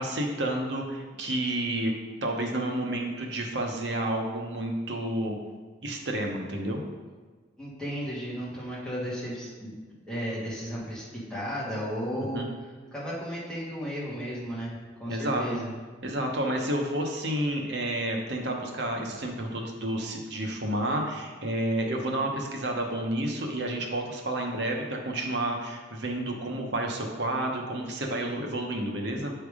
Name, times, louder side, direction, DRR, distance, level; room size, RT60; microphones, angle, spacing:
voice 1, 0.0-1.9 2.2-5.4 5.8-6.8 12.1-12.5 15.1-15.6 16.0-29.3, right 1 dB, 60° right, 1 dB, 0.9 m, -30 dB
voice 2, 7.6-9.7 10.1-12.4 12.9-14.7 15.0-15.7, equal, 5° left, -8 dB, 1.7 m, -34 dB
8.2 x 3.4 x 4.9 m, 1.4 s
head